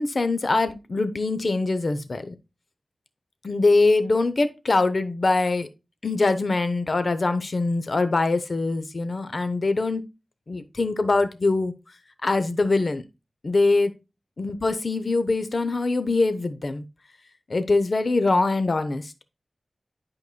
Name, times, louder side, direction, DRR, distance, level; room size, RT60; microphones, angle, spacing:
voice 1, 0.0-2.4 3.4-5.7 6.0-10.0 10.5-11.7 12.2-13.0 13.4-13.9 14.4-16.8 17.5-19.1, left 3 dB, 50° left, 11 dB, 0.7 m, -23 dB
11.0 x 4.8 x 2.2 m, 0.26 s
wide cardioid pair, 90°, 0 cm